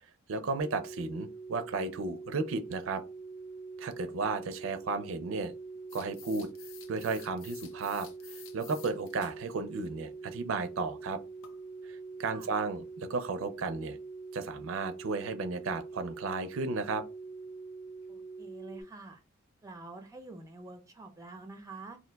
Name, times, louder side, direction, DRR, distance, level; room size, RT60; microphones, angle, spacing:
voice 1, 0.3-3.0 3.8-5.5 5.9-6.5 6.9-8.1 8.5-11.2 11.9-14.0 14.3-17.0, right 4 dB, 70° right, 0.4 m, -34 dB
sound 1, 0.6-18.8, right 4 dB, 50° left, 1.0 m, -44 dB
sound 2, 5.9-9.4 9.8-9.9 11.4-11.6 12.8-12.9 15.9-16.0 16.3-16.4 16.9-17.0 17.5-17.6 18.1-18.2, left 8 dB, 70° left, 0.5 m, -52 dB
voice 2, 18.1-19.2 19.6-22.0, right 3 dB, 15° right, 0.5 m, -47 dB
2.5 x 2.2 x 3.8 m
head